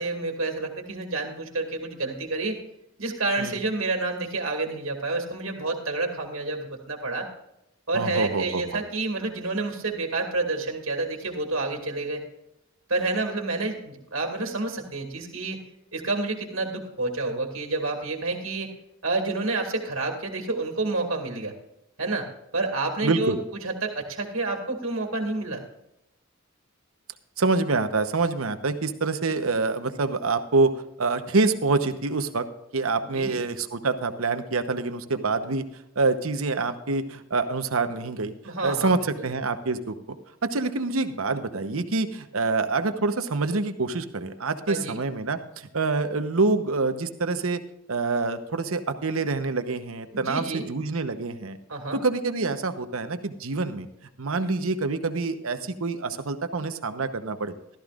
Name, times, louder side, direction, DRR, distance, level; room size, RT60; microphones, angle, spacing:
voice 1, 0.0-2.6 3.0-7.3 7.9-12.2 12.9-15.6 15.9-18.7 19.0-21.5 22.0-22.3 22.5-23.4 23.6-25.6 33.1-33.4 38.4-39.3 44.7-45.0 50.1-50.7 51.7-52.0, right 3 dB, 70° right, 2 dB, 2.1 m, -29 dB
voice 2, 7.9-8.8 23.0-23.4 27.4-30.7 31.0-32.4 32.7-35.6 36.0-38.3 38.6-39.9 40.4-47.6 47.9-51.6 51.9-53.9 54.2-57.5, right 3 dB, 85° right, 9 dB, 1.0 m, -26 dB
15.5 x 13.0 x 2.5 m, 0.84 s
head